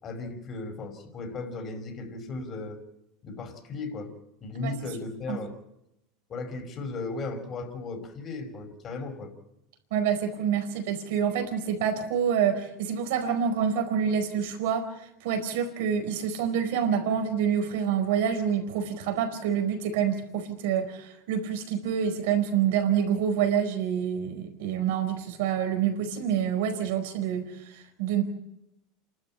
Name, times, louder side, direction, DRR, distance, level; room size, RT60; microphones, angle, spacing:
voice 1, 0.0-2.8 3.2-4.1 4.4-5.5 6.3-9.3, left 3 dB, 40° left, 5 dB, 5.6 m, -36 dB
voice 2, 9.9-28.2, right 8 dB, 75° right, 6 dB, 4.6 m, -27 dB
28.5 x 13.0 x 9.0 m, 0.86 s
hypercardioid pair, 100°, 0 cm